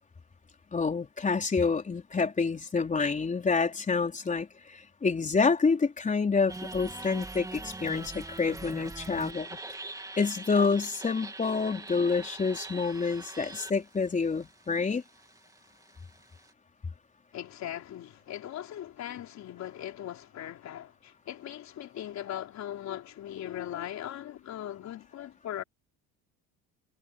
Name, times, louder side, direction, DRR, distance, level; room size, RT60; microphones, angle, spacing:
voice 1, 0.7-9.6 10.2-15.0, left 4 dB, 20° left, 4.3 m, -28 dB
sound 1, 6.5-16.5, right 2 dB, 10° right, 3.3 m, -43 dB
voice 2, 17.3-25.6, left 11 dB, 50° left, 3.9 m, -39 dB
cardioid pair, 130°, 35 cm